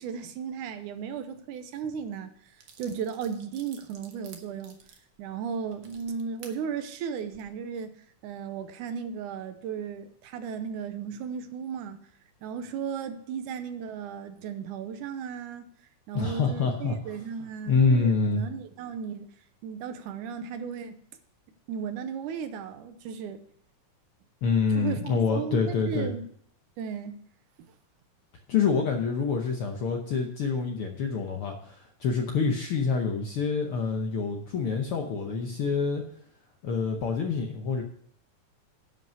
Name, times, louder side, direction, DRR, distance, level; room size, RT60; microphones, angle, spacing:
voice 1, 0.0-4.8 5.2-8.0 8.2-12.0 12.4-15.7 16.1-19.3 19.6-21.0 21.7-23.4 24.7-26.3 26.8-27.2, right 7 dB, 80° right, 9 dB, 2.3 m, -35 dB
sound 1, 2.1-2.2 2.6-6.6 7.1-7.4, right 6 dB, 55° right, 1.6 m, -51 dB
voice 2, 16.1-17.2 17.7-18.4 24.4-26.1 28.5-36.0 36.6-37.8, left 5 dB, 70° left, 3 dB, 1.4 m, -26 dB
11.0 x 5.3 x 6.7 m, 0.64 s
omnidirectional pair, 3.5 m